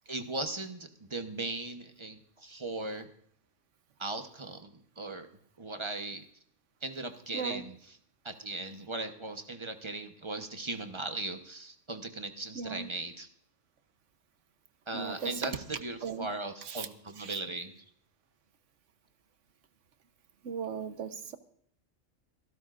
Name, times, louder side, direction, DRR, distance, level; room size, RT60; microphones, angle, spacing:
voice 1, 0.1-3.1 4.0-5.3 5.6-6.2 6.8-7.7 8.2-13.3 14.9-15.5 15.8-17.7, right 2 dB, 25° right, 7 dB, 1.0 m, -38 dB
voice 2, 12.5-12.9 14.9-15.6 16.0-16.3 16.6-16.9 17.2-17.4 20.4-21.4, right 6 dB, 70° right, 10 dB, 1.3 m, -37 dB
27.5 x 12.5 x 2.5 m, 0.66 s
omnidirectional pair, 1.3 m